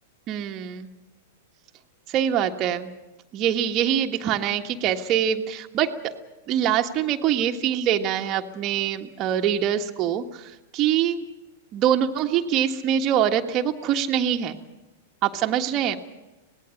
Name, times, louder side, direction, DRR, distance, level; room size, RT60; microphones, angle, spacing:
voice 1, 0.3-0.9 2.1-2.9 3.3-5.9 6.5-11.2 11.7-14.6 15.2-16.0, right 9 dB, 35° right, 4 dB, 1.5 m, -24 dB
25.0 x 19.0 x 6.5 m, 1.1 s
figure-of-eight pair, 100°, 0 cm